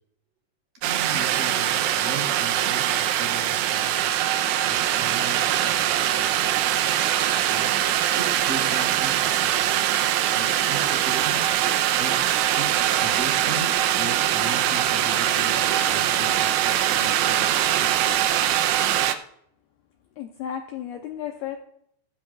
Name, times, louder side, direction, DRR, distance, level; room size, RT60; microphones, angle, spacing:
voice 1, 0.8-4.1 4.7-7.0 7.4-9.7 10.3-11.4 12.0-12.2 12.6-18.3, right 2 dB, 45° right, -1 dB, 4.5 m, -38 dB
sound 1, 0.8-19.1, right 11 dB, 85° right, 3.2 m, -22 dB
voice 2, 20.2-21.6, left 9 dB, 85° left, 3 dB, 2.2 m, -33 dB
17.0 x 14.0 x 2.4 m, 0.71 s
omnidirectional pair, 5.6 m